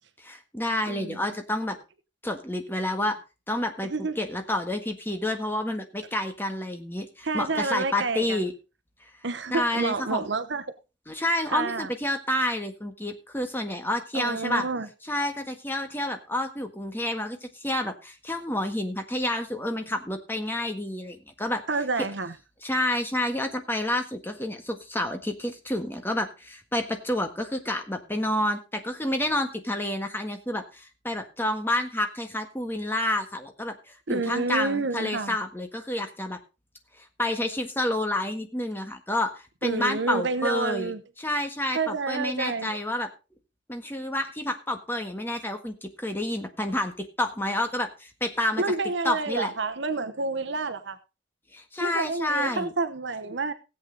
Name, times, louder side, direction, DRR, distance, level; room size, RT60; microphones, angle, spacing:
voice 1, 0.2-1.8 2.2-3.2 3.5-8.5 9.5-10.2 11.1-14.7 15.1-21.6 22.0-22.1 22.6-36.4 37.2-40.9 41.2-43.1 43.7-48.6 49.0-49.5 51.5-52.7, left 1 dB, 10° left, 1.6 m, -29 dB
voice 2, 0.9-1.2 3.9-4.1 7.2-8.4 9.2-10.6 11.5-11.9 14.1-14.9 21.7-22.3 34.1-35.3 39.6-41.0 41.7-42.8 48.6-51.0 51.8-53.5, right 3 dB, 65° right, 0.9 m, -29 dB
16.5 x 8.4 x 3.9 m
head